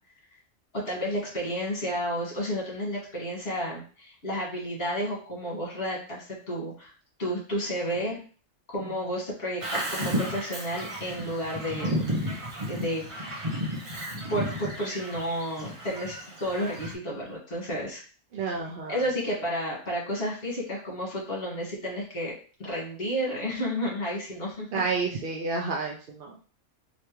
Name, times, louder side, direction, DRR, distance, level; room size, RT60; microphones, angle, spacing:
voice 1, 0.7-6.9 7.2-8.2 8.7-13.0 14.1-16.2 16.4-18.0 18.9-22.3 22.6-24.7, equal, 50° left, -4 dB, 1.7 m, -31 dB
Bird vocalization bird call bird song, 9.6-16.9, equal, 30° right, 0.7 m, -33 dB
voice 2, 18.3-19.0 24.7-26.4, right 4 dB, 65° right, 0 dB, 0.5 m, -30 dB
3.3 x 2.9 x 3.0 m, 0.39 s
omnidirectional pair, 1.4 m